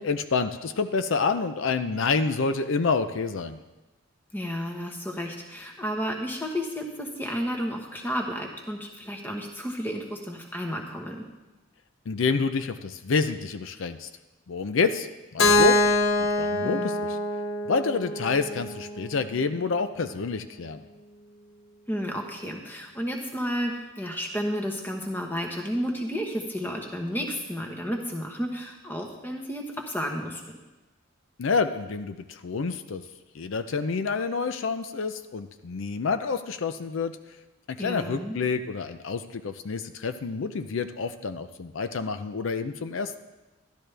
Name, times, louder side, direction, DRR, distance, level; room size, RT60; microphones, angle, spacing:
voice 1, 0.0-3.6 12.1-14.1 14.5-15.8 16.2-17.2 17.7-20.8 31.4-33.0 33.3-37.2 37.7-43.2, left 4 dB, 70° left, 10 dB, 0.5 m, -28 dB
voice 2, 4.3-11.3 16.6-17.0 21.9-30.6 37.8-38.4, equal, 10° left, 2 dB, 1.1 m, -32 dB
Keyboard (musical), 15.4-19.3, left 2 dB, 85° left, 1.0 m, -24 dB
12.5 x 12.0 x 3.4 m, 1.1 s
head